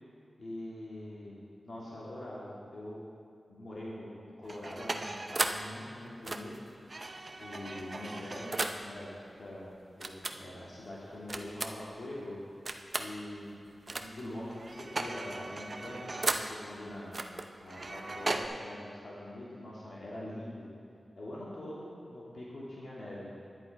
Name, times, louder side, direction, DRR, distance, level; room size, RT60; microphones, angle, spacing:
voice 1, 0.4-3.0 3.5-6.7 7.4-9.1 9.4-12.4 13.0-13.6 13.9-17.2 17.6-20.7 21.2-23.4, left 1 dB, 65° left, -7 dB, 2.4 m, -43 dB
sound 1, 4.4-5.7 6.2-8.9 10.0-10.4 11.3-11.9 12.7-13.1 13.9-14.3 14.5-16.6 17.1-18.5, right 2 dB, 40° right, 0.6 m, -36 dB
10.5 x 10.5 x 4.7 m, 2.6 s
wide cardioid pair, 105°, 0 cm